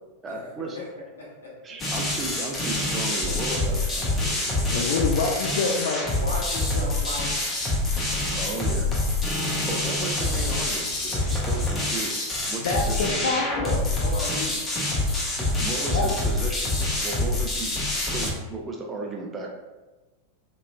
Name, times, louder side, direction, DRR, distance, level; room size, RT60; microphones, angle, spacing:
voice 1, 0.2-0.8 1.6-4.9 8.3-8.9 9.7-12.2 12.5-13.2 15.4-17.8 18.1-19.5, right 3 dB, 20° right, 0 dB, 0.4 m, -35 dB
voice 2, 1.2-1.5 6.2-7.4 8.8-9.0 14.0-14.7, left 1 dB, 75° left, -5 dB, 0.9 m, -35 dB
sound 1, 1.8-18.3, left 2 dB, 20° left, 0.6 m, -26 dB
voice 3, 4.7-6.0 12.6-13.9 14.9-15.0 15.9-16.1, left 4 dB, 60° left, -1 dB, 0.3 m, -26 dB
2.9 x 2.3 x 2.2 m, 1.2 s
figure-of-eight pair, 90°, 0 cm